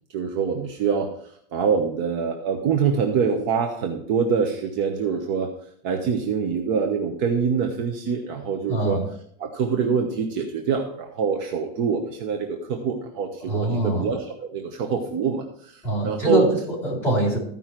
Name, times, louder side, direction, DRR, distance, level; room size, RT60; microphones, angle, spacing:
voice 1, 0.1-1.1 1.5-5.5 5.8-9.0 9.4-16.5, right 6 dB, 40° right, 2 dB, 1.1 m, -25 dB
voice 2, 8.7-9.0 13.4-14.1 15.8-17.4, right 1 dB, 5° left, -6 dB, 4.0 m, -23 dB
14.5 x 5.5 x 4.5 m, 0.64 s
supercardioid pair, 170°, 30 cm